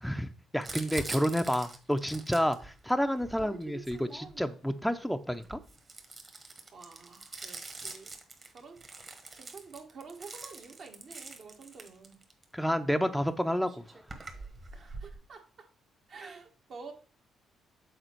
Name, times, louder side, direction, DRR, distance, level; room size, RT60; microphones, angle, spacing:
voice 1, 0.0-5.6 12.5-13.8, equal, ahead, 7 dB, 0.5 m, -30 dB
Crumpling crinkling, 0.6-4.7 5.3-12.4 13.3-13.4 13.6-15.1, right 3 dB, 35° right, 1.4 m, -44 dB
voice 2, 6.7-8.1 8.5-12.2 14.7-15.7 16.1-16.9, right 5 dB, 55° right, 3 dB, 1.4 m, -49 dB
6.7 x 4.2 x 4.5 m, 0.38 s
cardioid pair, 90°, 0 cm